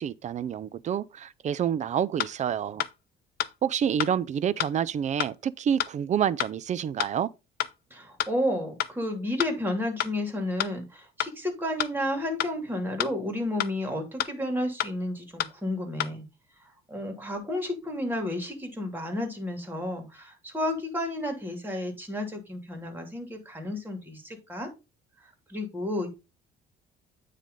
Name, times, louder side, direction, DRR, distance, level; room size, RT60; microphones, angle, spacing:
voice 1, 0.0-2.8 3.6-7.3, right 9 dB, 40° right, 0.5 m, -28 dB
sound 1, 2.2-2.3 2.8-2.9 3.4-3.5 4.0-4.1 4.6-4.7 5.2-5.3 5.8-5.9 6.4-6.5 7.0-7.1 7.6-7.7 8.2-8.3 8.8-8.9 9.4-9.5 10.0-10.1 10.6-10.7 11.2-11.3 11.8-11.9 12.4-12.5 13.0-13.1 13.6-13.7 14.2-14.3 14.8-14.9 15.4-15.5 16.0-16.1, left 12 dB, 60° left, 0.6 m, -28 dB
voice 2, 7.9-16.2 16.9-24.7 25.5-26.1, left 1 dB, 10° right, 2.7 m, -31 dB
9.1 x 3.3 x 5.2 m
cardioid pair, 110°, 18 cm